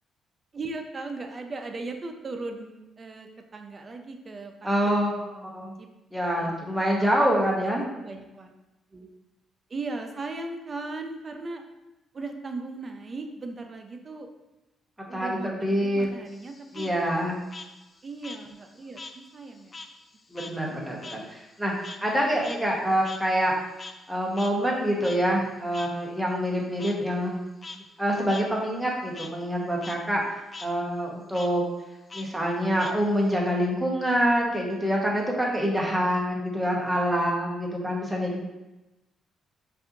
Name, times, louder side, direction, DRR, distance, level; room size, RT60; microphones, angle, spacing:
voice 1, 0.5-5.3 5.8-5.9 6.4-8.5 8.9-9.1 9.7-11.6 12.1-14.3 15.1-16.9 18.0-19.7, right 3 dB, 35° right, 5 dB, 0.5 m, -38 dB
voice 2, 4.6-5.7 6.1-7.9 15.1-16.1 16.7-17.4 20.3-23.5 24.1-27.4 28.0-30.2 30.6-31.6 32.1-38.4, equal, 5° right, -3 dB, 1.0 m, -26 dB
Frog, 16.3-19.2 19.5-24.1 24.4-24.5 25.0-25.2 25.7-25.9 26.8-26.9 27.5-27.8 28.3-28.4 28.8-29.3 29.7-30.0 30.3-30.7 31.3-31.5 32.1-33.3, left 3 dB, 30° left, 0.4 m, -42 dB
5.4 x 2.6 x 2.7 m, 0.99 s
cardioid pair, 90°, 0 cm